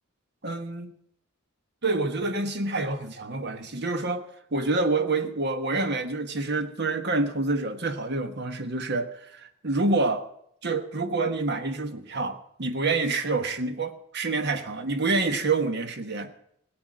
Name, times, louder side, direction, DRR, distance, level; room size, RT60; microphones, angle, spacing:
voice 1, 0.4-0.9 1.8-4.2 4.5-10.3 10.6-16.3, right 3 dB, 55° right, 9 dB, 1.2 m, -27 dB
17.0 x 8.0 x 9.0 m, 0.72 s
head